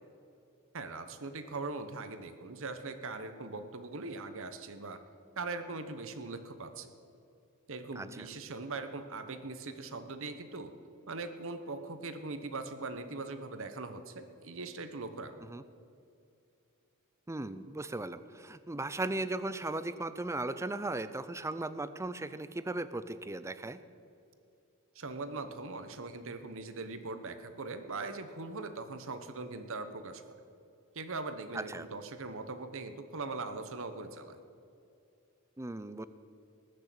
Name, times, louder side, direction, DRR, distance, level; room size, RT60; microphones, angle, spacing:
voice 1, 0.7-5.0 5.4-6.9 7.7-10.7 11.1-15.5 24.9-30.4 30.9-34.4, right 3 dB, 65° right, 9 dB, 1.2 m, -41 dB
voice 2, 17.3-23.8 31.5-31.9 35.6-36.1, right 2 dB, 15° right, 13 dB, 0.5 m, -37 dB
20.0 x 6.7 x 8.4 m, 2.6 s
head